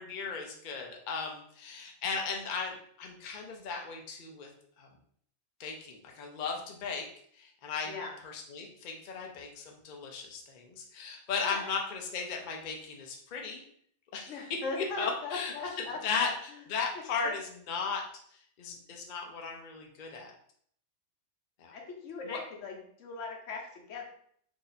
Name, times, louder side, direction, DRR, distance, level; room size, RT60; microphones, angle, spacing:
voice 1, 0.0-4.5 4.8-4.9 5.6-7.1 7.3-7.9 8.2-13.6 14.1-18.0 18.3-20.3 21.6-21.7 22.2-22.4, left 5 dB, 50° left, 1 dB, 0.6 m, -36 dB
voice 2, 14.3-16.3 17.2-17.4 21.7-24.0, left 4 dB, 80° left, 0 dB, 1.1 m, -39 dB
2.9 x 2.6 x 4.0 m, 0.63 s
omnidirectional pair, 1.2 m